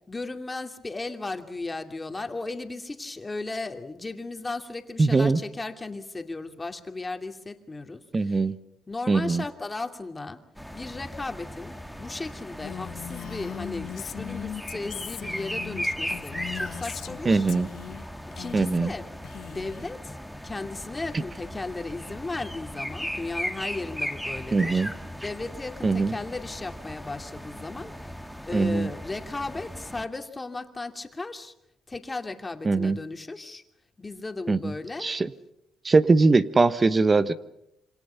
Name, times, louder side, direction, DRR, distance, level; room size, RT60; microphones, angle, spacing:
voice 1, 0.1-8.4 8.9-10.4 10.7-17.5 18.3-19.1 19.4-20.2 20.4-24.8 25.2-27.9 28.5-31.5 31.9-33.6 34.0-35.2, left 3 dB, 20° left, 6 dB, 2.5 m, -36 dB
voice 2, 5.0-5.4 8.1-8.6 9.1-9.4 17.2-17.7 18.5-18.9 24.5-24.9 25.8-26.1 28.5-28.9 32.6-33.0 34.5-34.7 35.0-35.3 35.8-37.3, right 3 dB, 30° right, 13 dB, 1.1 m, -21 dB
sound 1, 10.5-30.0, equal, ahead, 1.8 m, -37 dB
Female speech woman speaking, 12.6-17.2 17.5-18.0 18.3-19.0 19.2-19.9, left 10 dB, 75° left, 1.4 m, -39 dB
27.0 x 25.5 x 5.7 m, 0.81 s
cardioid pair, 90°, 0 cm